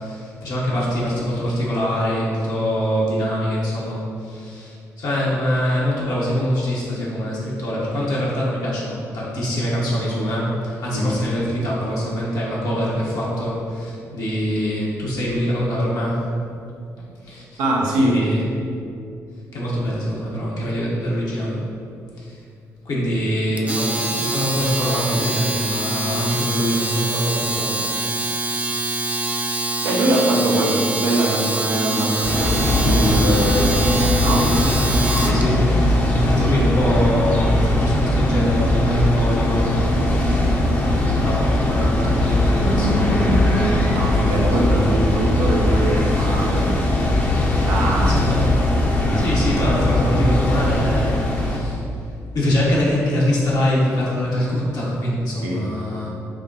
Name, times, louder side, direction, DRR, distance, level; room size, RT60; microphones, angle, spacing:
voice 1, 0.0-16.2 17.2-17.6 18.0-18.5 19.5-21.6 22.2-22.4 22.8-27.9 29.2-29.6 35.2-35.7 36.1-39.8 41.2-43.2 48.0-48.5 49.1-51.8 52.3-56.1, equal, 55° left, -6 dB, 1.0 m, -23 dB
voice 2, 17.6-18.3 29.8-33.8 34.2-34.6 43.9-46.8 47.6-48.1 49.0-49.3 55.4-55.6, right 1 dB, 65° right, -2 dB, 0.6 m, -22 dB
Domestic sounds home sounds, 23.6-35.4, right 2 dB, 15° right, 0.3 m, -25 dB
sound 1, 32.2-51.6, left 1 dB, 25° left, 0.8 m, -19 dB
6.0 x 2.2 x 2.9 m, 2.5 s
figure-of-eight pair, 40°, 8 cm